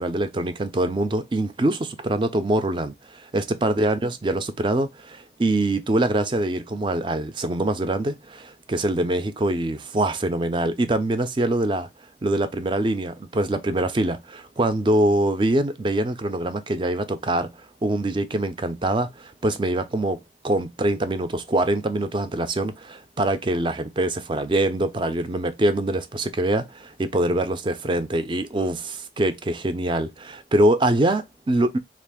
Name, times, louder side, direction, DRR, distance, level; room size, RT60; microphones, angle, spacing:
voice 1, 0.0-11.9 12.2-17.5 17.8-31.8, right 1 dB, 25° right, 0.4 m, -24 dB
3.4 x 2.5 x 3.5 m
head